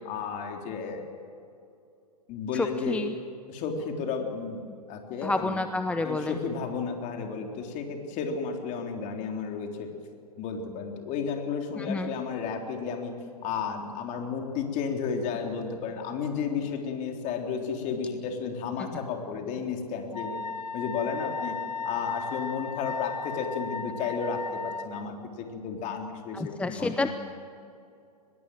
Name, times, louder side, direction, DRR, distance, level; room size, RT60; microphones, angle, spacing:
voice 1, 0.1-1.2 2.3-3.0 3.5-5.6 6.0-9.9 10.4-13.1 13.4-20.4 20.7-21.6 21.8-27.1, left 6 dB, 35° left, 3 dB, 3.7 m, -33 dB
voice 2, 2.5-3.1 5.2-6.4 11.8-12.1 26.3-27.1, left 2 dB, 5° left, 8 dB, 0.7 m, -29 dB
Wind instrument woodwind instrument, 20.1-25.0, left 4 dB, 85° left, 1.0 m, -35 dB
23.5 x 21.0 x 7.8 m, 2.5 s
hypercardioid pair, 110°, 21 cm